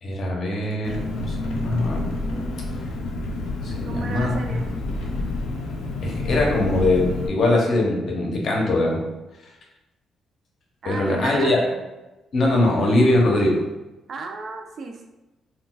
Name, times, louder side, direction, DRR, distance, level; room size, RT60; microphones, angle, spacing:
voice 1, 0.0-2.0 3.6-4.4 6.0-9.0 10.8-11.6 12.3-13.6, left 2 dB, 55° left, -1 dB, 0.8 m, -21 dB
Engine, 0.8-7.3, left 2 dB, 85° left, 0.5 m, -29 dB
voice 2, 3.8-4.7 10.8-11.8 14.1-15.1, right 4 dB, 55° right, 4 dB, 0.4 m, -34 dB
3.8 x 2.2 x 2.4 m, 1.0 s
cardioid pair, 90°, 0 cm